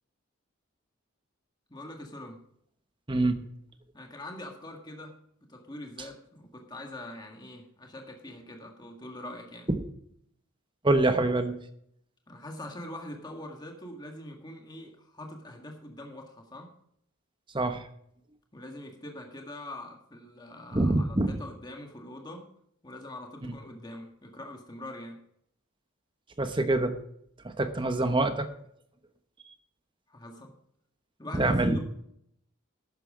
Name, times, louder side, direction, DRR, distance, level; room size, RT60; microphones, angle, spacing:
voice 1, 1.7-2.4 3.9-5.2 5.5-9.7 12.3-16.7 18.5-22.5 22.8-25.2 30.1-30.5 31.2-31.8, left 1 dB, 20° left, 2 dB, 1.7 m, -43 dB
voice 2, 3.1-3.5 10.8-11.5 17.5-17.9 20.7-21.4 26.4-26.9 27.4-28.5 31.3-31.8, right 2 dB, 20° right, 8 dB, 1.0 m, -25 dB
12.0 x 9.1 x 5.1 m, 0.70 s
head